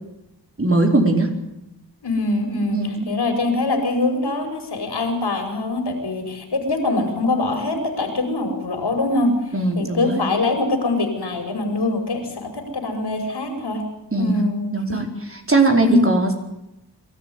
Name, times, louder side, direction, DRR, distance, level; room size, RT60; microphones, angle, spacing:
voice 1, 0.6-1.3 2.7-3.1 9.5-10.2 14.1-14.4 14.7-15.0 15.5-16.3, right 2 dB, 30° right, 3 dB, 4.6 m, -19 dB
voice 2, 2.0-13.9 14.2-15.0 15.8-16.1, left 2 dB, 65° left, 5 dB, 5.8 m, -23 dB
24.0 x 13.5 x 9.8 m, 0.93 s
cardioid pair, 60°, 43 cm